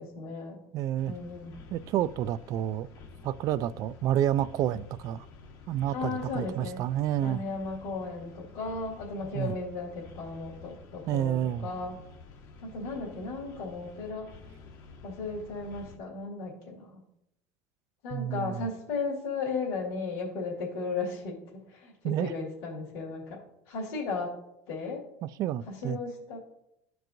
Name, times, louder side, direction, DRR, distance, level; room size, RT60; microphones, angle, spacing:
voice 1, 0.0-0.6 1.0-1.6 5.9-6.8 7.2-11.3 11.6-12.0 12.6-14.3 15.0-16.9 18.0-21.4 21.7-23.4 23.7-24.3 24.7-25.0 25.7-26.4, left 4 dB, 75° left, 2.2 m, -35 dB
voice 2, 0.7-1.1 1.7-2.9 3.2-5.3 5.7-7.4 9.3-9.5 11.1-11.7 18.1-18.7 22.0-22.3 25.2-26.0, right 11 dB, 50° right, 0.3 m, -29 dB
sound 1, 1.0-16.0, left 4 dB, 60° left, 1.0 m, -50 dB
13.0 x 4.6 x 2.6 m
supercardioid pair, 110°, 7 cm